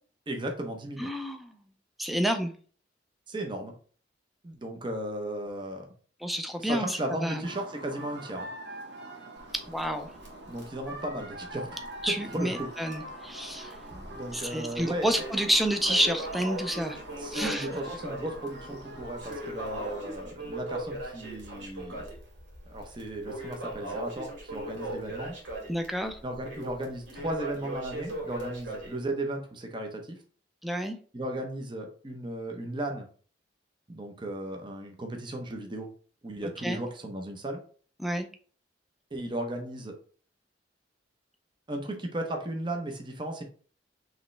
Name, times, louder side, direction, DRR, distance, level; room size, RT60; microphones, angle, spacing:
voice 1, 0.3-1.1 3.3-3.7 4.4-5.9 6.6-8.5 10.5-11.8 12.2-12.7 13.5-13.7 14.1-15.1 17.2-22.1 22.7-25.3 26.2-30.1 31.1-33.1 33.9-35.9 36.2-37.6 39.1-40.0 41.7-43.4, right 1 dB, 25° right, 3 dB, 0.8 m, -35 dB
voice 2, 1.0-1.6 2.0-2.5 6.2-7.5 9.5-10.1 12.0-13.7 14.3-17.0 17.3-17.7 25.7-26.2 30.6-31.0 36.6-36.8 38.0-38.3, equal, ahead, 5 dB, 0.4 m, -29 dB
sound 1, 7.4-20.1, right 1 dB, 70° right, 1.0 m, -43 dB
Crackle, 9.4-12.1 12.3-12.4 12.9-13.0 13.7-14.3 14.7-29.0, right 1 dB, 90° right, 2.1 m, -39 dB
5.0 x 3.2 x 3.2 m, 0.43 s
head